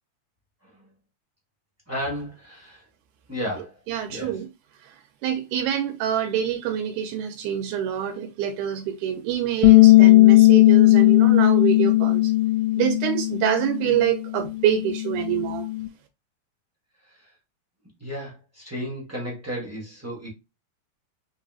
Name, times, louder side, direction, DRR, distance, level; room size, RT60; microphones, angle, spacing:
voice 1, 1.9-2.8 3.3-3.7 4.1-4.4 17.1-17.3 18.0-20.3, equal, 25° right, 0.3 m, -33 dB
voice 2, 3.9-4.5 5.2-12.3 12.8-15.7, right 10 dB, 85° right, 2.1 m, -26 dB
Bass guitar, 9.6-15.9, left 18 dB, 85° left, 2.0 m, -17 dB
4.3 x 3.8 x 2.4 m
omnidirectional pair, 3.4 m